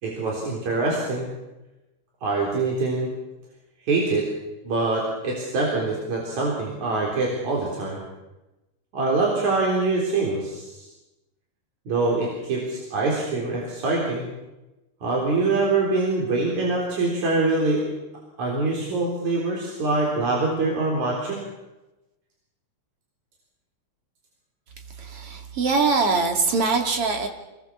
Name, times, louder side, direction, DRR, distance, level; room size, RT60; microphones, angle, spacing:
voice 1, 0.0-1.3 2.2-3.1 3.9-4.3 4.6-8.0 8.9-10.9 11.9-14.3 15.0-17.9 18.4-21.4, right 3 dB, 75° right, -2 dB, 5.2 m, -24 dB
voice 2, 25.0-27.3, right 4 dB, 50° right, 4 dB, 3.4 m, -22 dB
27.0 x 20.0 x 7.3 m, 1.0 s
omnidirectional pair, 3.3 m